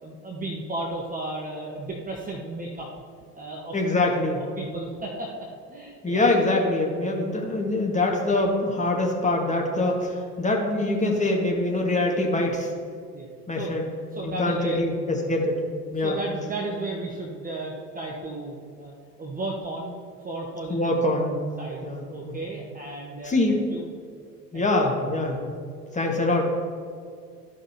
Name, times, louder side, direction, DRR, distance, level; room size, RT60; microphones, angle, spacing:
voice 1, 0.0-2.9 3.3-3.8 4.4-6.3 13.1-13.3 13.5-13.8 14.1-14.8 16.0-19.9 20.2-21.0 21.6-23.8 24.5-24.9, right 2 dB, 15° right, -2 dB, 1.1 m, -34 dB
voice 2, 3.7-4.4 6.0-12.7 13.5-13.9 14.2-15.6 15.9-16.2 20.7-21.4 21.8-22.0 22.2-22.3 23.2-23.6 24.5-25.4 25.9-26.4, left 2 dB, 15° left, -1 dB, 1.7 m, -24 dB
14.0 x 5.4 x 2.9 m, 2.2 s
figure-of-eight pair, 75°, 48 cm